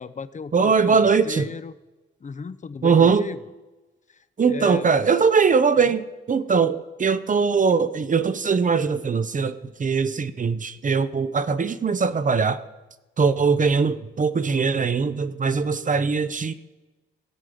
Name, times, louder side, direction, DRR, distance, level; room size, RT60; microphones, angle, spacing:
voice 1, 0.0-1.7 2.2-3.4 4.1-4.9 5.9-6.0, left 5 dB, 40° left, 15 dB, 0.7 m, -36 dB
voice 2, 0.5-1.5 2.8-3.3 4.4-12.6 13.2-16.5, right 5 dB, 40° right, 13 dB, 0.8 m, -21 dB
16.5 x 7.6 x 5.1 m, 1.1 s
cardioid pair, 60°, 20 cm